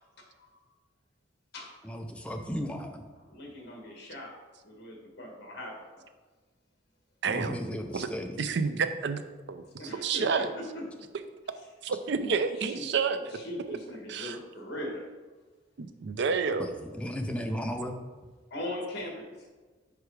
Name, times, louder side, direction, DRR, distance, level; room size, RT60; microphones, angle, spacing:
voice 1, 1.8-3.1 7.2-8.4 16.6-18.0, equal, 5° left, 4 dB, 0.5 m, -35 dB
voice 2, 3.2-4.3 4.6-6.0 9.8-10.8 12.6-12.9 13.3-15.0 18.5-19.5, left 1 dB, 60° left, 0 dB, 1.5 m, -40 dB
voice 3, 7.2-7.6 7.9-8.1 8.4-9.2 9.5-9.6 10.0-10.5 11.8-13.2 13.7-13.8 14.1-14.4 16.0-16.7, right 5 dB, 65° right, 9 dB, 0.4 m, -29 dB
4.7 x 4.7 x 4.8 m, 1.3 s
head